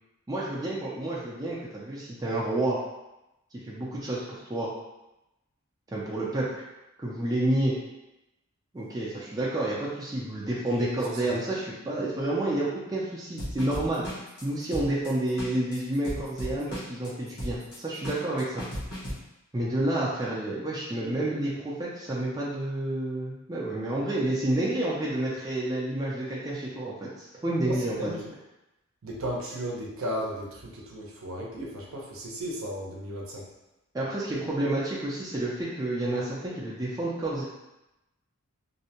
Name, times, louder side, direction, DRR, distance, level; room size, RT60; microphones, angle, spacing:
voice 1, 0.3-2.8 3.6-4.7 5.9-6.6 7.0-7.7 8.7-14.1 14.4-18.7 19.5-28.1 33.9-37.4, right 1 dB, 15° right, -6 dB, 0.4 m, -29 dB
sound 1, 13.4-19.1, equal, 75° left, 1.0 m, -36 dB
voice 2, 27.6-28.3 29.0-33.4, equal, 70° right, -2 dB, 0.6 m, -35 dB
2.6 x 2.1 x 2.8 m, 0.95 s
head